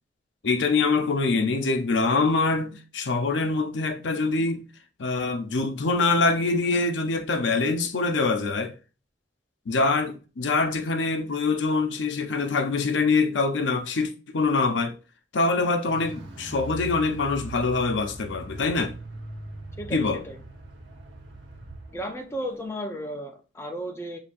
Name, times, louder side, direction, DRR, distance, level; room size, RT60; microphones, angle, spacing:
voice 1, 0.4-4.7 5.0-8.7 9.7-15.0 15.3-19.0 19.9-20.2, left 3 dB, 85° left, 0.6 m, -24 dB
Car, 15.9-22.0 22.3-22.4, right 3 dB, 90° right, 0.9 m, -40 dB
voice 2, 19.8-20.4 21.9-24.2, equal, 15° left, 0.5 m, -34 dB
6.9 x 2.7 x 2.5 m
head